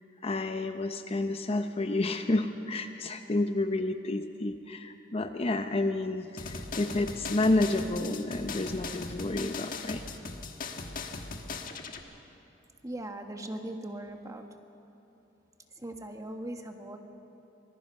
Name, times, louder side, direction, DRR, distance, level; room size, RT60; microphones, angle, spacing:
voice 1, 0.2-10.0, left 2 dB, 35° left, 8 dB, 0.7 m, -30 dB
sound 1, 6.4-12.0, left 4 dB, 50° left, 1.4 m, -39 dB
voice 2, 12.8-14.5 15.8-17.0, right 1 dB, 20° right, 4 dB, 1.3 m, -39 dB
24.5 x 20.0 x 5.5 m, 2.9 s
head